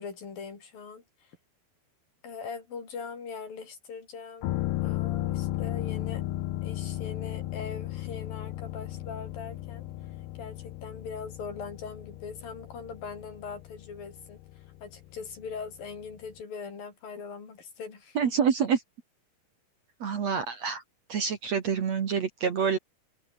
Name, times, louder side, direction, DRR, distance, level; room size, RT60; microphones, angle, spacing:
voice 1, 0.0-1.4 2.2-6.2 6.6-18.3, left 5 dB, 60° left, 6.3 m, -41 dB
sound 1, 4.4-16.0 16.3-16.4, left 15 dB, 90° left, 3.2 m, -35 dB
voice 2, 18.2-18.8 20.0-20.8 21.1-22.8, right 7 dB, 50° right, 2.7 m, -27 dB
omnidirectional pair, 4.6 m